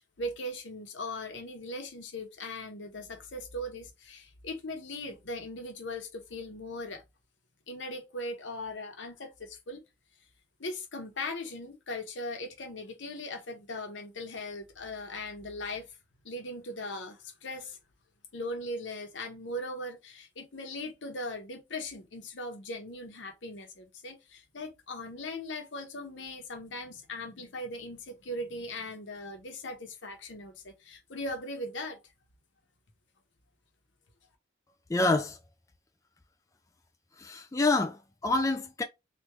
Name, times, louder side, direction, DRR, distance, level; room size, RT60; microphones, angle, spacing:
voice 1, 0.0-7.0 7.7-9.8 10.6-16.0 16.2-17.8 18.3-32.0, left 1 dB, 80° left, 0.9 m, -39 dB
voice 2, 34.9-35.4 37.2-38.8, left 2 dB, 15° left, 0.3 m, -27 dB
3.5 x 2.5 x 3.0 m
head